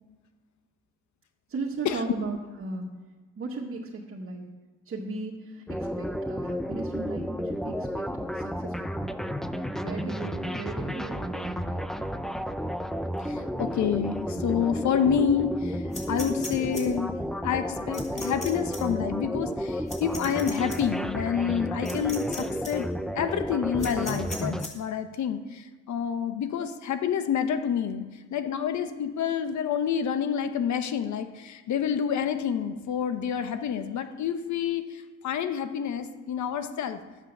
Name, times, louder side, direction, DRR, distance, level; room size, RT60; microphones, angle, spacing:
voice 1, 1.5-2.9 3.4-4.4 4.9-8.1 8.3-9.1 9.7-11.6, right 3 dB, 45° right, -4 dB, 1.8 m, -36 dB
sound 1, 5.7-24.7, equal, ahead, 0.5 m, -32 dB
voice 2, 13.2-17.1 17.4-22.9 23.1-28.0 28.3-37.0, left 8 dB, 70° left, 9 dB, 1.2 m, -28 dB
sound 2, 15.9-16.8 17.9-18.5 18.7-18.8 19.9-20.8 21.9-22.4 22.6-22.7 23.8-24.7, left 2 dB, 25° left, 3.5 m, -37 dB
12.0 x 8.2 x 6.8 m, 1.3 s
cardioid pair, 90°, 30 cm